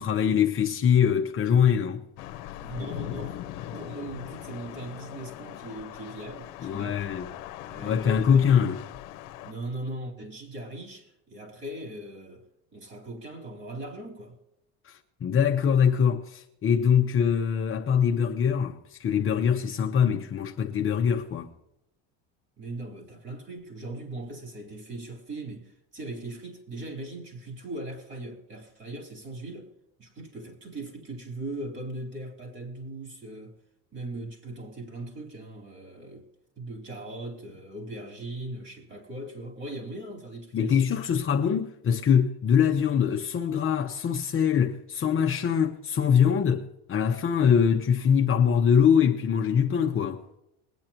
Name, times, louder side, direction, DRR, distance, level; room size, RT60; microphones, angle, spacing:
voice 1, 0.0-2.0 6.6-7.3 7.8-8.8 14.8-21.5 40.5-50.2, left 7 dB, 35° left, 0.9 m, -23 dB
Thunder / Rain, 2.2-9.5, left 13 dB, 80° left, 0.9 m, -40 dB
voice 2, 2.6-7.1 7.6-8.6 9.4-12.5 12.7-14.4 22.6-29.7 30.0-33.5 33.9-36.2 36.6-41.0, right 1 dB, 30° right, 4.0 m, -39 dB
21.5 x 9.4 x 3.0 m
cardioid pair, 125°, 38 cm